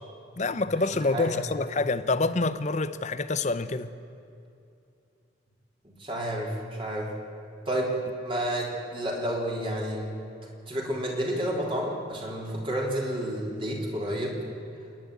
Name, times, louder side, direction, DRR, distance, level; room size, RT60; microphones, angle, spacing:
voice 1, 0.4-3.9, left 3 dB, 40° left, 0.7 m, -27 dB
voice 2, 0.9-1.4 5.8-7.1 7.7-10.1 10.4-14.4, right 1 dB, 30° right, 3.6 m, -30 dB
27.5 x 11.0 x 9.3 m
head